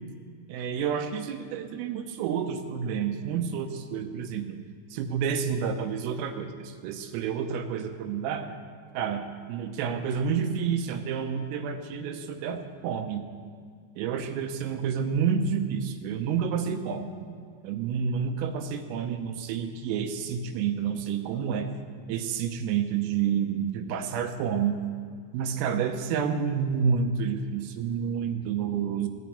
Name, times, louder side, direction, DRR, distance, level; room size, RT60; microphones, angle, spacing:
voice 1, 0.5-4.6 4.9-8.5 9.0-13.3 14.0-17.1 17.6-21.7 22.1-24.8 25.3-29.1, right 7 dB, 85° right, 6 dB, 3.5 m, -29 dB
17.5 x 6.1 x 9.7 m, 2.1 s
omnidirectional pair, 5.9 m